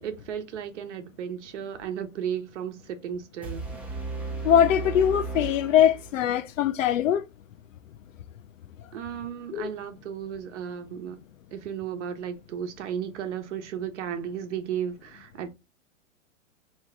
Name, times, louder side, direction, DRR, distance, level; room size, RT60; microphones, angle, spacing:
voice 1, 0.0-3.7 8.9-11.2 11.5-15.5, right 8 dB, 60° right, 1.0 m, -34 dB
sound 1, 3.4-6.4, right 3 dB, 5° right, 0.4 m, -35 dB
voice 2, 4.4-7.2 9.5-9.7, left 10 dB, 75° left, 0.6 m, -22 dB
3.5 x 3.0 x 3.3 m
hypercardioid pair, 135°, 39 cm